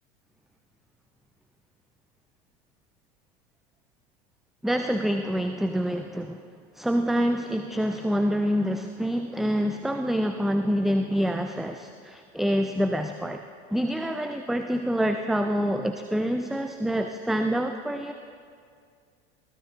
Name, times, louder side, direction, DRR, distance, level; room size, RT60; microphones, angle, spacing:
voice 1, 4.6-6.4 6.8-13.4 13.7-18.1, equal, ahead, 7 dB, 0.4 m, -26 dB
22.5 x 15.5 x 2.7 m, 2.2 s
figure-of-eight pair, 75°, 33 cm